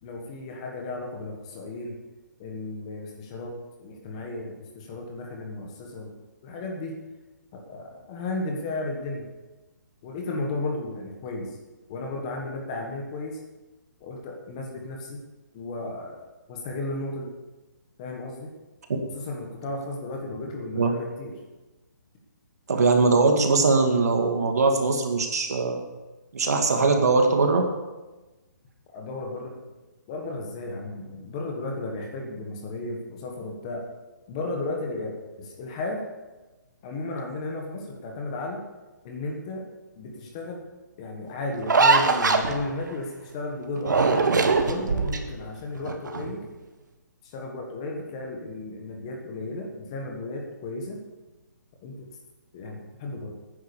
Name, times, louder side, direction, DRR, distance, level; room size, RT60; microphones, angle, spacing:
voice 1, 0.0-2.0 2.4-6.1 6.4-7.0 7.5-9.3 10.0-11.6 11.9-13.4 14.0-15.2 15.5-16.2 16.5-17.3 18.0-18.5 19.1-21.3 28.9-29.6 30.1-33.8 34.3-36.0 36.8-38.6 39.0-39.6 40.0-40.7 41.0-44.2 44.6-46.5 47.2-51.0 51.8-52.1 52.5-53.3, left 2 dB, 20° left, 1 dB, 1.4 m, -34 dB
voice 2, 22.7-25.8 26.3-27.7, right 3 dB, 55° right, 3 dB, 2.2 m, -21 dB
sound 1, 41.6-42.9 43.8-45.4 45.8-46.3, right 4 dB, 75° right, 1.7 m, -21 dB
11.0 x 9.8 x 6.9 m, 1.1 s
hypercardioid pair, 175°, 10 cm